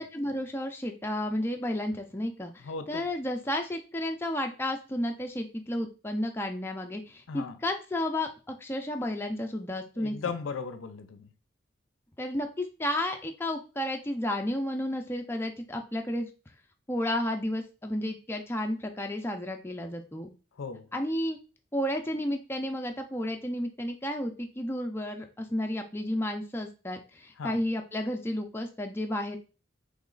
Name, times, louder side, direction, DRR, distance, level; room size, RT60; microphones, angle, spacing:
voice 1, 0.0-10.2 12.2-16.3 16.9-20.3 20.9-21.4 21.7-29.4, left 1 dB, 10° left, 0.4 m, -32 dB
voice 2, 2.6-3.1 7.3-7.6 10.0-11.3 20.6-20.9 27.4-27.6, left 5 dB, 80° left, 0.5 m, -37 dB
3.2 x 3.1 x 3.8 m
head